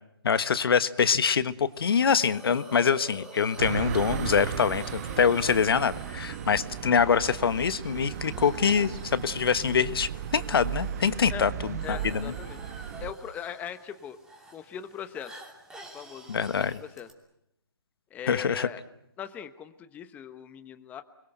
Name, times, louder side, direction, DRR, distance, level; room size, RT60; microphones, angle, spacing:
voice 1, 0.2-12.3 16.3-16.8 18.3-18.7, left 6 dB, 65° left, 13 dB, 1.4 m, -25 dB
Hiss, 1.7-17.1, right 1 dB, 5° right, 3.0 m, -48 dB
sound 1, 3.6-13.1, right 9 dB, 40° right, 1.3 m, -36 dB
voice 2, 11.8-12.6 13.0-14.2 14.5-15.3 15.9-17.1 18.1-18.8 19.2-21.0, left 9 dB, 10° left, 10 dB, 1.0 m, -40 dB
29.0 x 22.0 x 8.0 m, 0.83 s
hypercardioid pair, 150°, 13 cm